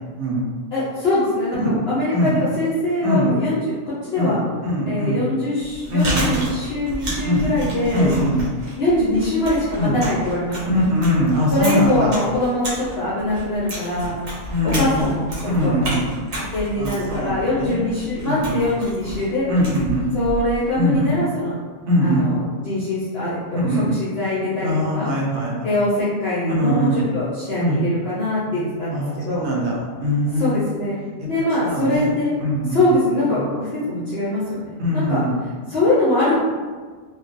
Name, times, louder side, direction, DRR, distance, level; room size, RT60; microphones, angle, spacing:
voice 1, 0.7-3.6 3.9-4.4 4.8-8.1 8.8-10.8 11.5-14.2 14.6-16.0 16.4-19.5 20.1-21.5 22.0-25.1 25.6-29.4 30.4-31.0 31.3-32.3 32.7-34.7 34.9-35.2 35.7-36.5, left 1 dB, 60° left, -9 dB, 0.7 m, -23 dB
voice 2, 4.6-5.2 5.9-6.4 7.2-7.4 7.9-8.4 9.8-10.0 10.7-12.1 14.5-15.1 15.4-16.1 16.8-17.9 18.2-18.6 19.5-20.1 20.8-21.1 21.9-22.3 23.5-23.9 24.6-25.6 26.6-27.0 27.6-27.8 28.5-30.6 31.6-32.8 33.3-33.4 34.8-35.3, equal, 80° right, -3 dB, 1.1 m, -22 dB
Chewing mastication, 5.6-20.7, right 1 dB, 60° right, 1.0 m, -31 dB
2.5 x 2.2 x 2.4 m, 1.5 s
omnidirectional pair, 1.5 m